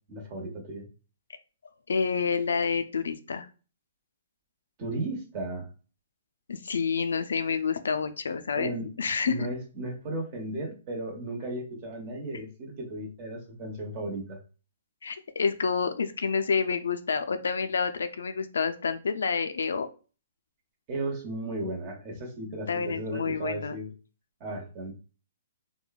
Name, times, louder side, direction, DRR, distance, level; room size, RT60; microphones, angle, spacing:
voice 1, 0.1-0.9 4.8-5.7 8.5-8.9 9.2-14.4 20.9-23.9 24.4-24.9, right 2 dB, 35° right, 2 dB, 0.9 m, -35 dB
voice 2, 1.9-3.5 6.5-8.7 9.0-9.5 15.0-19.9 22.7-23.8, left 5 dB, 80° left, 9 dB, 0.3 m, -28 dB
3.0 x 2.1 x 2.3 m, 0.35 s
hypercardioid pair, 140°, 0 cm